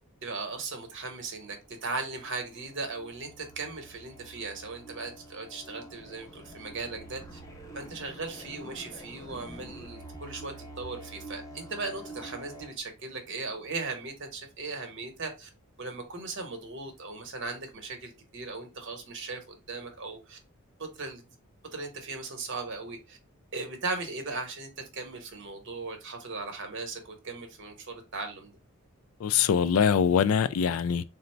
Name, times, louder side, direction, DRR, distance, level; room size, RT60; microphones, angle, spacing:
voice 1, 0.2-7.4 7.7-15.5 15.8-20.4 20.8-21.3 21.7-23.2 23.5-28.5, right 3 dB, 60° right, 1.0 m, -38 dB
sound 1, 1.4-12.8, right 1 dB, 15° left, 0.6 m, -47 dB
voice 2, 29.2-31.0, left 7 dB, 80° left, 0.3 m, -23 dB
3.9 x 2.0 x 4.2 m
head